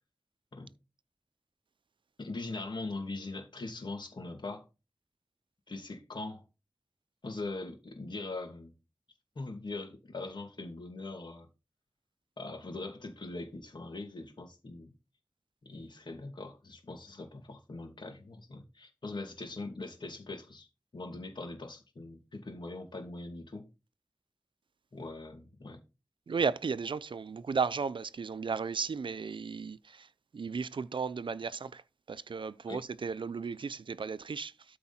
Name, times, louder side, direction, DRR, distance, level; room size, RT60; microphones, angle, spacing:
voice 1, 2.2-4.6 5.7-6.4 7.2-8.7 9.4-11.5 12.4-14.9 15.6-20.7 20.9-23.7 24.9-25.8 32.7-32.8, left 2 dB, 70° left, 2.7 m, -41 dB
voice 2, 26.3-31.8 32.1-34.8, right 5 dB, 80° right, 0.5 m, -35 dB
13.0 x 4.7 x 4.3 m
wide cardioid pair, 85°, 8 cm